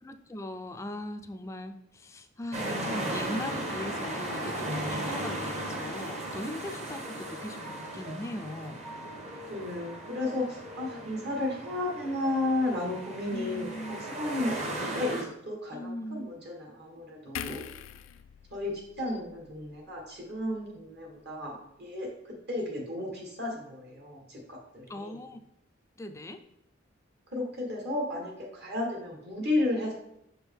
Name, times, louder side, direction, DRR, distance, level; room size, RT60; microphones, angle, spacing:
voice 1, 0.0-8.9 13.3-14.0 15.7-16.3 24.9-25.4 26.0-26.4, left 1 dB, 15° left, 8 dB, 0.3 m, -39 dB
sound 1, 2.5-15.2, right 1 dB, 35° right, 0.9 m, -36 dB
sound 2, 7.0-15.1, right 2 dB, 75° right, 2.0 m, -48 dB
voice 2, 9.5-17.7 18.5-25.2 27.3-29.9, left 2 dB, 55° right, -1 dB, 1.3 m, -33 dB
sound 3, 17.4-20.7 21.1-21.3, left 8 dB, 90° left, 0.3 m, -44 dB
6.2 x 4.4 x 3.5 m, 0.79 s
head